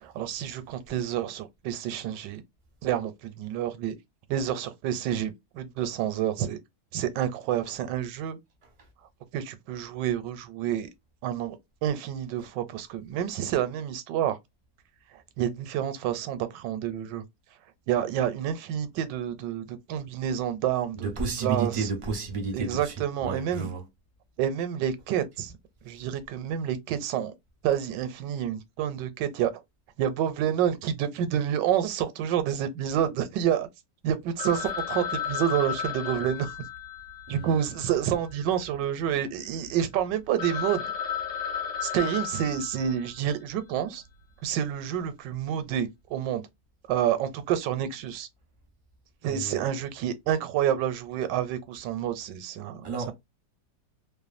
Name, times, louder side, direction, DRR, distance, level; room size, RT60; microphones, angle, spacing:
voice 1, 0.0-2.4 2.8-3.9 4.3-6.6 6.9-8.4 9.3-10.9 11.2-11.6 11.8-14.4 15.1-17.2 17.9-21.9 22.5-23.7 24.4-25.6 25.8-27.3 27.6-29.5 30.0-33.7 34.0-36.6 37.3-40.8 41.8-44.0 44.4-46.4 46.9-48.3 49.2-52.8, right 10 dB, 85° right, 1.2 m, -28 dB
voice 2, 21.0-22.9 23.2-23.8 37.3-37.5 49.3-49.6 52.8-53.1, right 4 dB, 35° right, 0.5 m, -31 dB
Telephone, 34.4-38.7 39.0-39.1 39.6-39.7 40.1-40.2 40.4-43.3, left 8 dB, 60° left, 1.2 m, -34 dB
2.9 x 2.2 x 2.4 m
omnidirectional pair, 1.9 m